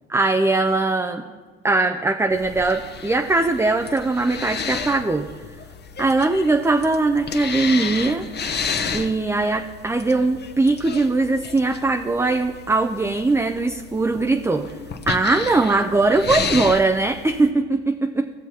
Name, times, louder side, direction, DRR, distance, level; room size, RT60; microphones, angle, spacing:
voice 1, 0.1-1.3 1.6-5.3 6.0-8.3 8.9-14.7 15.1-18.3, right 3 dB, 10° right, 5 dB, 0.4 m, -20 dB
sound 1, 2.3-17.5, left 5 dB, 30° left, 0.8 m, -32 dB
16.0 x 6.9 x 2.9 m, 1.5 s
hypercardioid pair, 75°, 35 cm